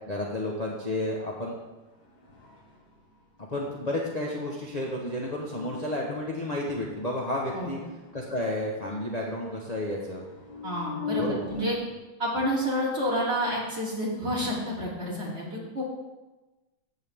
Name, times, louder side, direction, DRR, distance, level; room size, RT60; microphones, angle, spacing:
voice 1, 0.0-1.6 3.5-7.8 8.1-10.2 11.2-11.7, left 1 dB, 25° left, -3 dB, 1.2 m, -31 dB
sound 1, 0.8-1.4 1.9-3.3 4.4-12.0, left 5 dB, 60° left, 2.7 m, -42 dB
voice 2, 10.6-11.8 12.2-15.8, equal, 35° right, -6 dB, 3.5 m, -29 dB
14.5 x 8.1 x 3.7 m, 1.1 s
omnidirectional pair, 2.1 m